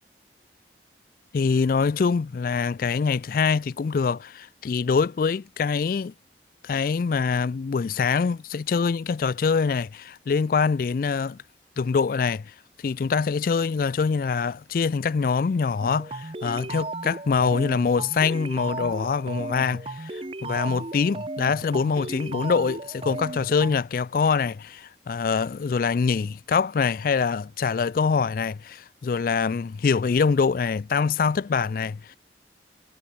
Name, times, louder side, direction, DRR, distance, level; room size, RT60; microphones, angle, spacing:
voice 1, 1.3-6.1 6.6-11.4 11.8-12.5 12.8-32.2, left 5 dB, 50° left, 0.4 m, -24 dB
sound 1, 15.8-23.8, right 2 dB, 30° right, 1.1 m, -35 dB
head